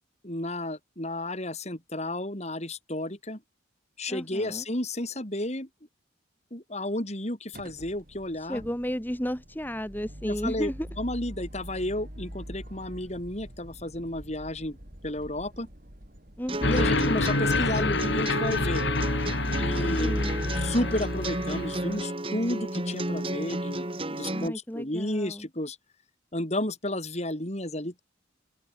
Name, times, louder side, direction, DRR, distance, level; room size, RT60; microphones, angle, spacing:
voice 1, 0.2-3.4 4.0-5.7 6.5-8.6 10.2-10.7 11.0-14.8 15.0-15.7 16.6-18.8 19.6-20.1 20.6-25.8 26.3-28.0, left 1 dB, 35° left, 4.6 m, -32 dB
voice 2, 4.1-4.6 8.5-10.9 16.4-16.9 20.0-20.4 24.3-25.5, equal, 10° left, 3.6 m, -33 dB
sound 1, 7.5-19.3, equal, 45° right, 6.5 m, -45 dB
sound 2, 16.5-24.5, right 1 dB, 30° right, 3.9 m, -33 dB
sound 3, 16.6-22.0, left 2 dB, 65° left, 2.8 m, -27 dB
head